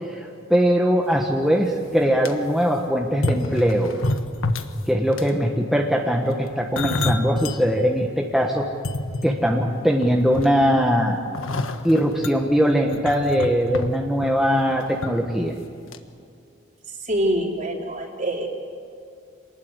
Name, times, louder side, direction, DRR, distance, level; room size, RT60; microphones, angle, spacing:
voice 1, 0.1-3.9 4.9-8.7 9.2-11.2 11.8-15.5, equal, ahead, 0 dB, 1.5 m, -21 dB
sound 1, 1.4-1.5 1.9-2.3 3.1-4.8 5.1-5.4 6.3-7.6 8.1-8.2 8.7-9.7 10.0-10.8 11.3-15.1 15.4-15.6 15.9-16.0, left 2 dB, 85° left, 1.5 m, -28 dB
voice 2, 17.1-18.5, right 1 dB, 40° right, 1 dB, 3.6 m, -25 dB
26.5 x 19.5 x 8.1 m, 2.4 s
head